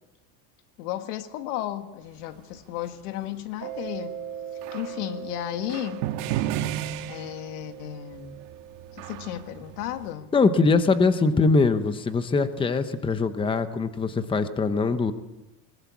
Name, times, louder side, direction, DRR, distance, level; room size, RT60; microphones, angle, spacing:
voice 1, 0.8-4.1 4.7-6.1 7.1-8.4 8.9-10.3, left 13 dB, 85° left, 1.9 m, -34 dB
Mallet percussion, 3.6-10.0, right 8 dB, 40° right, 5.1 m, -40 dB
sound 1, 4.6-5.0 5.7-7.9 8.1-10.1, right 12 dB, 65° right, 2.0 m, -33 dB
voice 2, 10.3-15.1, left 4 dB, 10° left, 1.0 m, -22 dB
21.0 x 20.0 x 8.5 m
cardioid pair, 150°, 44 cm